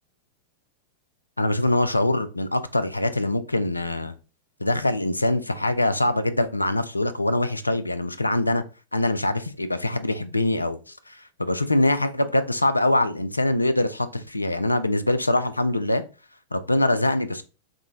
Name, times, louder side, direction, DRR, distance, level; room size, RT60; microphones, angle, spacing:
voice 1, 1.4-4.2 4.6-8.6 8.9-16.0 16.5-17.4, left 1 dB, 85° left, 0.3 m, -23 dB
3.7 x 2.0 x 3.5 m
figure-of-eight pair, 90°, 0 cm